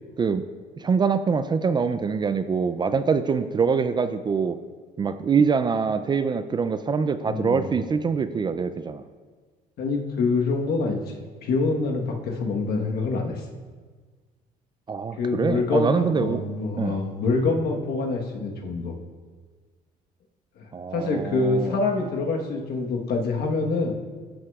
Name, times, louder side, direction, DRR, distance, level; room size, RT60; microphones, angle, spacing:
voice 1, 0.8-4.6 5.0-9.1 14.9-16.4 16.8-17.0 20.7-21.7, right 5 dB, 25° right, 11 dB, 0.3 m, -24 dB
voice 2, 7.3-7.6 9.8-11.1 11.4-13.4 15.2-18.9 20.6-20.7 20.9-23.9, left 3 dB, 70° left, 1 dB, 1.2 m, -25 dB
13.5 x 6.3 x 2.4 m, 1.5 s
cardioid pair, 110°, 17 cm